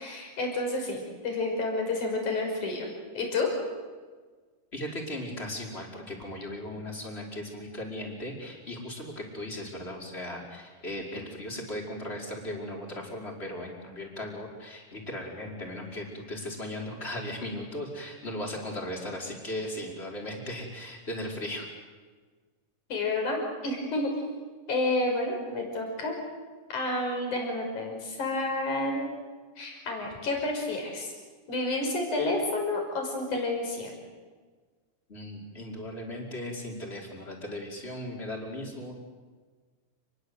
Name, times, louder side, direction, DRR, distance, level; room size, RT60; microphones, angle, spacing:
voice 1, 0.0-3.5 22.9-24.1 24.7-26.1 26.7-29.1 29.6-31.1 31.5-33.9, left 2 dB, 60° left, 2 dB, 7.4 m, -30 dB
voice 2, 4.7-21.7 35.1-38.9, left 1 dB, 15° left, -1 dB, 5.2 m, -37 dB
29.0 x 22.0 x 8.1 m, 1.4 s
omnidirectional pair, 3.9 m